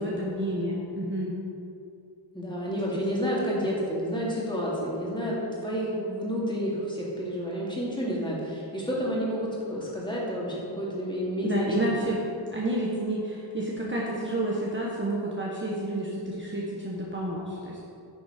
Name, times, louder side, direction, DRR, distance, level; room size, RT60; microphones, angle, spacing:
voice 1, 0.0-1.3 2.9-3.0 11.4-12.3 12.5-17.8, right 1 dB, 25° right, -4 dB, 1.1 m, -30 dB
voice 2, 2.3-11.9, equal, 10° left, -6 dB, 2.3 m, -30 dB
9.6 x 7.0 x 5.0 m, 2.6 s
wide cardioid pair, 150°, 47 cm